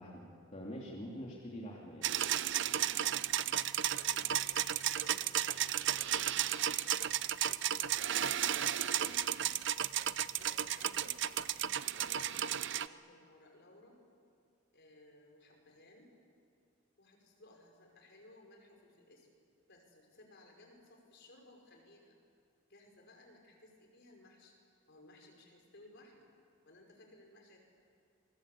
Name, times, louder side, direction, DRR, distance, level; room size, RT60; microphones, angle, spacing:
voice 1, 0.0-2.1, equal, 35° left, -3 dB, 2.9 m, -45 dB
sound 1, 2.0-12.9, right 11 dB, 65° right, 0.6 m, -33 dB
voice 2, 3.2-6.7 7.2-9.2 9.9-14.0 14.7-16.1 17.0-19.3 19.7-22.2 22.7-24.5 24.9-26.3 26.7-27.6, left 2 dB, 60° left, 2 dB, 5.3 m, -60 dB
28.0 x 22.0 x 8.5 m, 2.3 s
head